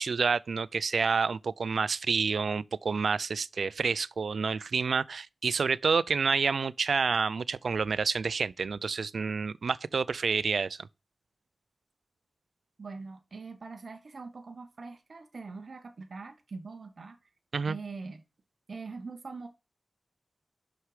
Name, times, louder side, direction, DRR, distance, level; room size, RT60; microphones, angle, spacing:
voice 1, 0.0-10.8 17.5-17.8, right 5 dB, 85° right, 0.3 m, -28 dB
voice 2, 12.8-17.2 17.6-18.2 18.7-19.5, right 4 dB, 70° right, 1.0 m, -43 dB
6.4 x 6.1 x 4.8 m
wide cardioid pair, 70°, 0 cm